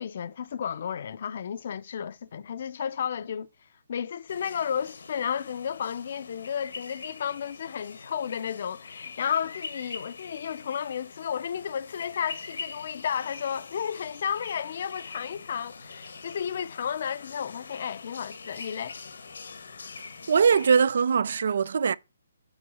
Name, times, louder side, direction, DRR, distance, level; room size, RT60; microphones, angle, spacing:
voice 1, 0.0-3.5 3.9-19.0, left 8 dB, 50° left, 0.6 m, -32 dB
sound 1, 4.3-20.8, left 4 dB, 75° left, 1.3 m, -44 dB
voice 2, 20.3-21.9, right 6 dB, 60° right, 0.5 m, -21 dB
8.8 x 4.5 x 6.3 m
hypercardioid pair, 165°, 0 cm